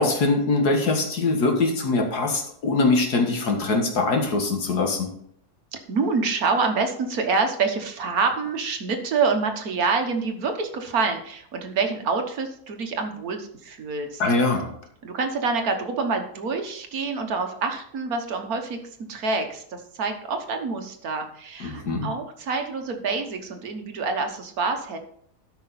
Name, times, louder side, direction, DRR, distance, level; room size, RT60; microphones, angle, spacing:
voice 1, 0.0-5.1 14.2-14.7 21.6-22.1, left 3 dB, 75° left, 2 dB, 2.2 m, -22 dB
voice 2, 5.7-14.6 15.0-18.8 19.1-25.0, right 4 dB, 65° right, 5 dB, 1.6 m, -27 dB
13.0 x 5.8 x 4.1 m, 0.66 s
omnidirectional pair, 1.7 m